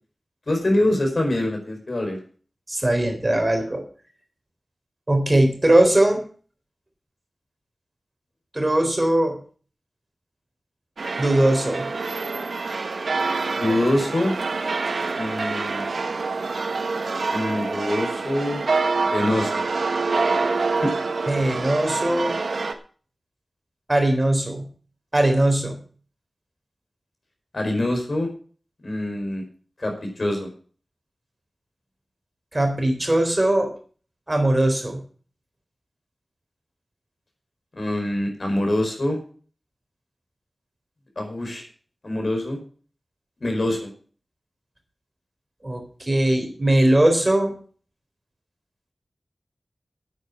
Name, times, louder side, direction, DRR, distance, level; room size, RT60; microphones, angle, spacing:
voice 1, 0.5-2.2 13.6-14.3 15.1-15.9 17.3-18.6 19.1-19.6 20.8-20.9 27.5-28.3 28.8-29.4 29.8-30.5 37.8-39.2 41.2-41.6 42.0-42.6 43.4-43.9, left 1 dB, 55° left, 3 dB, 4.7 m, -24 dB
voice 2, 2.7-3.8 5.1-6.2 8.5-9.4 11.2-11.9 21.3-22.4 23.9-24.7 25.1-25.8 32.5-33.7 34.3-35.0 45.6-47.5, right 1 dB, 25° right, 3 dB, 3.8 m, -20 dB
sound 1, 11.0-22.7, right 3 dB, 85° right, 1.2 m, -26 dB
9.4 x 8.8 x 7.3 m, 0.42 s
wide cardioid pair, 70°, 0 cm